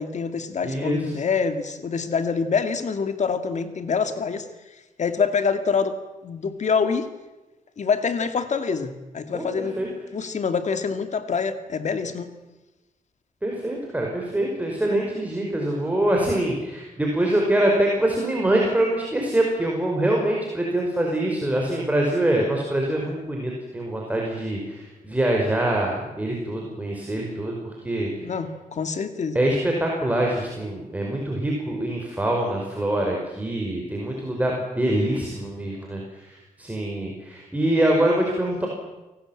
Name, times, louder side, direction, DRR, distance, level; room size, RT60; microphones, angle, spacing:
voice 1, 0.0-4.5 5.0-7.1 7.8-9.8 10.1-12.3 28.2-29.4, left 5 dB, 55° left, 9 dB, 2.2 m, -26 dB
voice 2, 0.6-1.0 9.3-9.9 13.4-28.1 29.3-38.7, right 1 dB, 10° right, -1 dB, 5.3 m, -24 dB
30.0 x 18.5 x 8.9 m, 1.1 s
wide cardioid pair, 130°, 14 cm